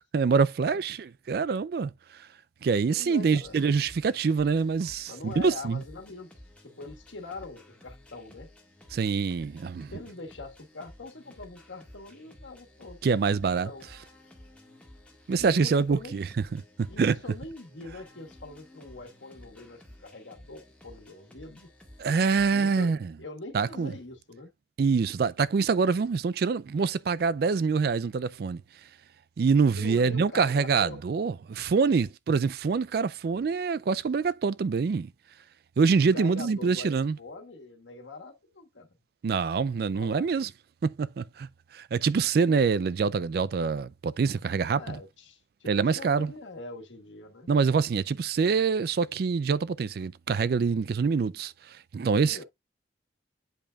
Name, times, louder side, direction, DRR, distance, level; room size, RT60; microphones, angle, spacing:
voice 1, 0.1-2.3 2.6-5.8 8.9-9.9 13.0-13.7 15.3-17.2 22.0-23.1 23.5-23.9 24.8-28.6 29.4-35.1 35.8-37.2 39.2-40.5 40.8-45.0 45.7-46.3 47.5-52.4, right 5 dB, 55° right, 0.3 m, -25 dB
voice 2, 2.9-3.5 5.1-6.3 6.6-8.5 9.9-13.0 13.5-13.9 15.3-16.2 16.9-21.7 22.5-22.9 23.2-24.5 29.7-31.0 36.0-38.9 39.9-40.3 44.7-47.5 52.2-52.4, left 3 dB, 80° left, 1.5 m, -43 dB
sound 1, 3.4-22.6, left 1 dB, 5° left, 1.7 m, -53 dB
8.8 x 5.0 x 2.3 m
head